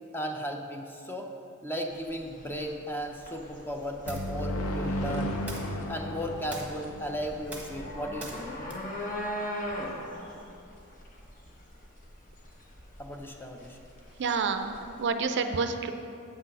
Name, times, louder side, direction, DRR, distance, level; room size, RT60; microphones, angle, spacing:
voice 1, 0.1-1.3 1.6-5.3 5.9-8.4 13.0-13.8, equal, 10° left, 3 dB, 0.6 m, -35 dB
sound 1, 1.9-15.1, equal, 40° left, 1.0 m, -41 dB
sound 2, 4.0-7.8, equal, 70° left, 0.7 m, -34 dB
sound 3, 4.0-10.1, right 2 dB, 5° right, 1.3 m, -48 dB
voice 2, 14.2-15.9, right 5 dB, 55° right, 8 dB, 0.4 m, -29 dB
7.8 x 6.2 x 5.4 m, 2.5 s
head